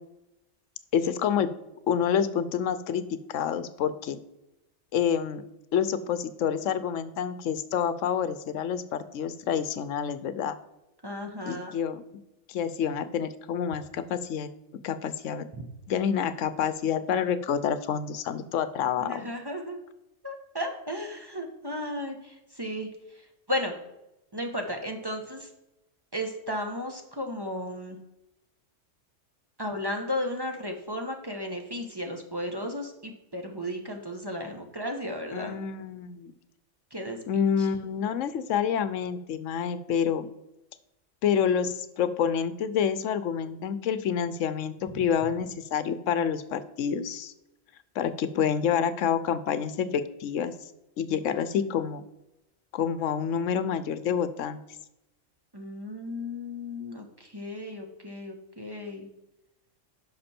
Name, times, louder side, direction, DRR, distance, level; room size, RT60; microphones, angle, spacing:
voice 1, 0.9-1.5 1.9-4.2 4.9-5.4 5.7-10.6 11.5-12.0 12.5-14.5 14.8-15.5 15.9-19.3 35.3-36.3 37.3-40.3 41.2-47.3 48.0-50.5 51.0-52.0 52.7-54.6, left 8 dB, 80° left, 13 dB, 1.0 m, -28 dB
voice 2, 11.0-11.8 15.5-15.6 19.0-19.8 20.2-23.7 24.3-25.5 26.1-28.0 29.6-35.6 36.9-37.7 44.9-45.0 55.5-59.1, left 1 dB, 20° right, 3 dB, 1.1 m, -34 dB
10.5 x 6.1 x 4.3 m, 0.90 s
omnidirectional pair, 1.3 m